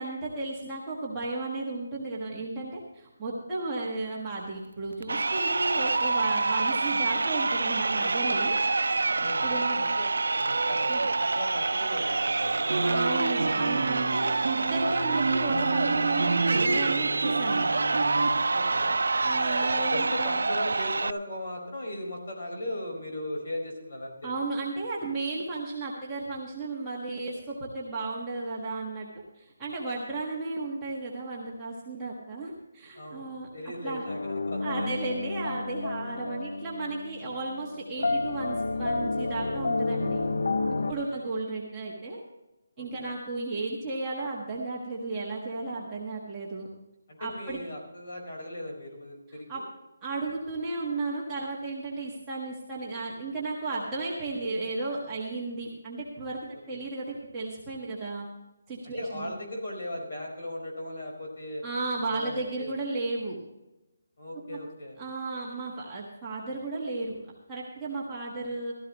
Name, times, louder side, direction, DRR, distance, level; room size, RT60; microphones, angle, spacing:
voice 1, 0.0-8.6 9.4-9.8 10.9-11.0 12.8-17.6 19.2-20.4 24.2-29.1 29.3-33.5 33.8-34.1 34.6-40.3 40.9-42.2 42.8-46.7 47.2-47.6 49.5-49.6 50.0-58.3 58.7-59.3 61.6-63.4 64.5-64.6 65.0-67.2 67.5-68.7, right 3 dB, 10° right, -7 dB, 1.4 m, -34 dB
Crowd, 5.0-21.1, right 3 dB, 85° right, 0.3 m, -27 dB
voice 2, 9.2-10.1 10.7-12.8 18.5-19.0 19.9-24.3 33.0-34.9 40.8-41.3 42.8-43.1 47.1-49.6 58.8-61.6 62.1-62.7 64.2-65.0, left 1 dB, 45° left, 1 dB, 4.7 m, -38 dB
sound 1, 12.7-18.3, right 3 dB, 55° right, 3.2 m, -29 dB
sound 2, 34.1-40.9, left 3 dB, 75° left, 0.9 m, -30 dB
15.5 x 13.5 x 3.0 m, 0.97 s
hypercardioid pair, 180°, 0 cm